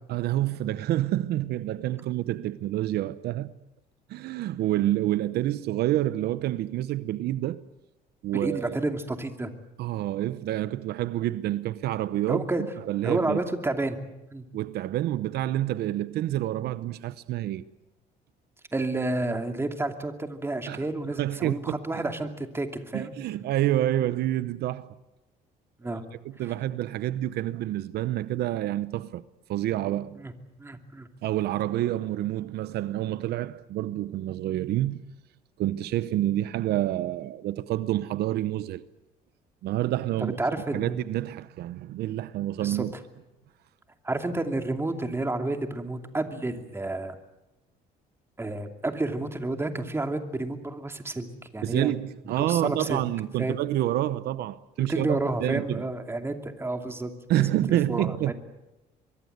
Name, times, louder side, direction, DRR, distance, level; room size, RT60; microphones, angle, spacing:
voice 1, 0.1-3.5 4.1-7.7 8.2-8.8 9.8-13.4 14.5-17.6 20.7-22.0 22.9-25.0 25.8-25.9 26.2-29.2 29.5-30.2 31.2-35.0 35.6-38.8 39.6-40.4 40.7-42.9 51.6-55.9 57.3-58.3, right 14 dB, 70° right, 0.8 m, -28 dB
voice 2, 8.4-9.5 12.3-12.6 13.0-14.0 14.3-14.5 18.7-23.1 25.8-26.0 30.2-30.3 30.6-31.1 40.2-41.0 42.6-42.8 44.0-47.2 48.4-51.3 51.5-51.9 52.4-53.0 53.4-53.6 54.8-57.1 57.4-58.3, right 2 dB, 15° right, 2.7 m, -30 dB
24.0 x 23.0 x 8.1 m
cardioid pair, 110°, 17 cm